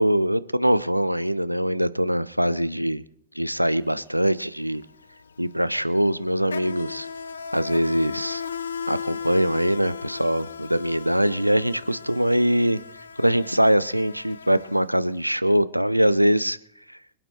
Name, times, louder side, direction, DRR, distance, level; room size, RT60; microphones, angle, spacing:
voice 1, 0.0-3.0 3.3-4.8 5.4-7.1 7.5-8.4 8.9-12.8 13.2-16.6, equal, 90° right, 15 dB, 0.5 m, -22 dB
Insect, 3.8-4.0 4.3-15.3, left 6 dB, 70° left, 0.7 m, -37 dB
25.5 x 9.0 x 3.2 m, 0.65 s
figure-of-eight pair, 90°, 0 cm